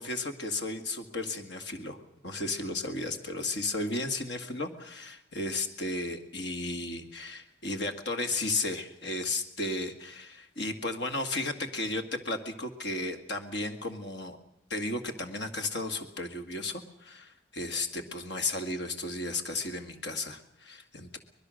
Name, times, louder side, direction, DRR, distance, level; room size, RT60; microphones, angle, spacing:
voice 1, 0.0-2.0 2.2-14.4 14.7-21.2, left 2 dB, 60° left, 7 dB, 2.1 m, -34 dB
25.0 x 20.5 x 6.5 m, 0.80 s
head